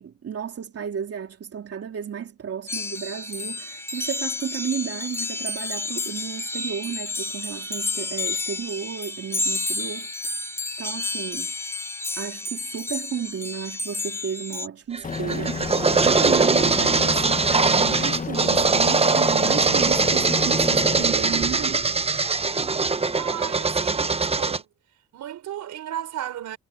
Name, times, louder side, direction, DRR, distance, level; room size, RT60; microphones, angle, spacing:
voice 1, 0.0-10.1 10.8-11.5 12.2-21.9, right 8 dB, 50° right, 3.1 m, -33 dB
sound 1, 2.7-14.7, left 3 dB, 10° left, 1.4 m, -31 dB
sound 2, 14.9-24.6, right 4 dB, 20° right, 0.8 m, -21 dB
Aircraft, 15.0-21.0, left 5 dB, 25° left, 1.1 m, -31 dB
voice 2, 23.2-24.7 25.1-26.6, right 11 dB, 75° right, 4.5 m, -34 dB
cardioid pair, 90°, 30 cm